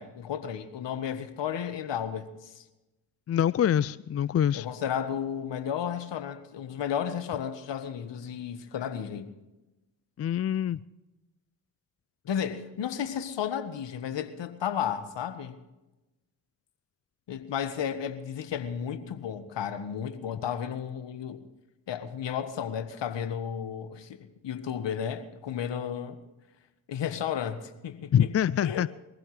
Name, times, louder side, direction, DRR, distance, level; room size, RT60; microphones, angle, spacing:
voice 1, 0.0-2.6 4.5-9.3 12.2-15.6 17.3-21.5 21.9-26.2 26.9-28.3 28.6-28.9, left 8 dB, 60° left, 1.7 m, -33 dB
voice 2, 3.3-4.7 10.2-10.8 28.1-28.9, left 9 dB, 30° left, 0.5 m, -25 dB
22.5 x 15.5 x 3.3 m
hypercardioid pair, 45°, 48 cm